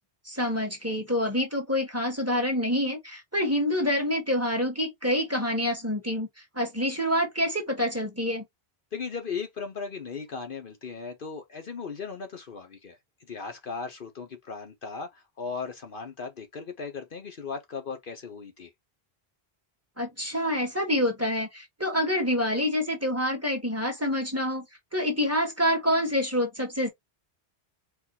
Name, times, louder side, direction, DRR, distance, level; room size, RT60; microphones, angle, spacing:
voice 1, 0.2-6.3 6.5-8.4 20.0-24.6 24.9-26.9, left 1 dB, 15° right, 1.6 m, -27 dB
voice 2, 8.9-13.0 13.3-18.7, left 5 dB, 55° left, 1.0 m, -37 dB
4.6 x 2.5 x 4.0 m
omnidirectional pair, 1.1 m